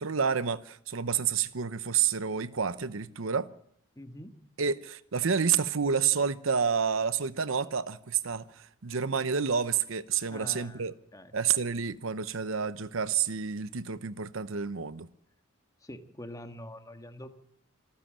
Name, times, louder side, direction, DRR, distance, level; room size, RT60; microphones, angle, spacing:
voice 1, 0.0-3.5 4.6-10.9 11.3-15.1, right 6 dB, 70° right, 0.8 m, -29 dB
voice 2, 3.9-4.3 10.3-11.3 15.8-17.3, left 1 dB, 15° left, 1.6 m, -45 dB
26.5 x 14.5 x 7.5 m
head